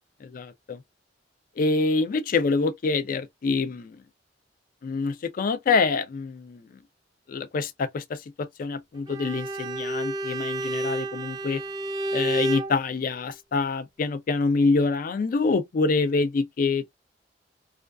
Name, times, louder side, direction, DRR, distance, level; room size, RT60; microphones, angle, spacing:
voice 1, 0.2-0.8 1.6-4.0 4.8-6.6 7.3-11.6 12.1-16.9, left 4 dB, 50° left, 0.4 m, -26 dB
Bowed string instrument, 9.1-12.8, right 1 dB, 20° right, 0.4 m, -30 dB
2.4 x 2.2 x 2.3 m
head